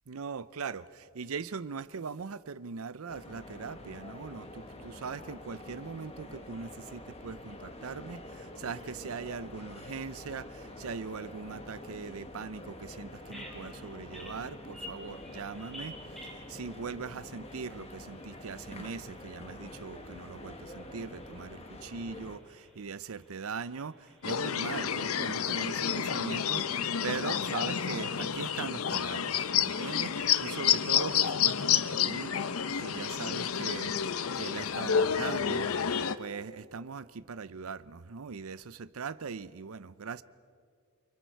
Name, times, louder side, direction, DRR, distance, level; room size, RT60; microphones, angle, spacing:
voice 1, 0.1-16.0 16.2-32.5 32.8-35.7 36.2-40.2, right 5 dB, 80° right, 16 dB, 0.6 m, -40 dB
sound 1, 3.1-22.4, left 1 dB, 30° left, 1.7 m, -46 dB
Bird vocalization bird call bird song, 13.2-33.0, equal, ahead, 4.9 m, -55 dB
sound 2, 24.2-36.1, left 8 dB, 80° left, 0.7 m, -29 dB
28.5 x 25.0 x 4.6 m, 2.2 s
head